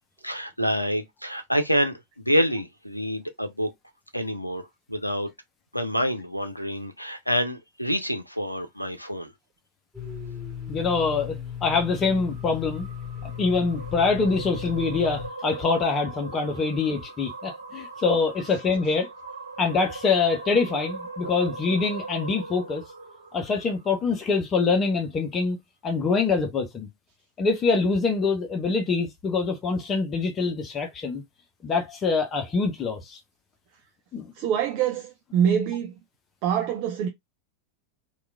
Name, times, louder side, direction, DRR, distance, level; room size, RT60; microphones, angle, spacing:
voice 1, 0.2-3.7 4.1-5.3 5.7-9.3, equal, 90° left, 0.5 m, -27 dB
Domestic sounds home sounds, 9.9-15.3, left 8 dB, 5° left, 1.7 m, -36 dB
voice 2, 10.7-11.4 11.6-12.9 13.4-19.1 19.6-22.8 23.3-25.6 25.8-26.9 27.4-31.2 31.6-33.2 34.1-34.3, left 4 dB, 25° left, 0.7 m, -25 dB
sound 1, 11.8-24.2, right 3 dB, 75° right, 0.7 m, -40 dB
voice 3, 34.3-35.9 36.4-37.1, right 8 dB, 40° right, 0.4 m, -25 dB
3.0 x 2.3 x 2.2 m
figure-of-eight pair, 90°, 0 cm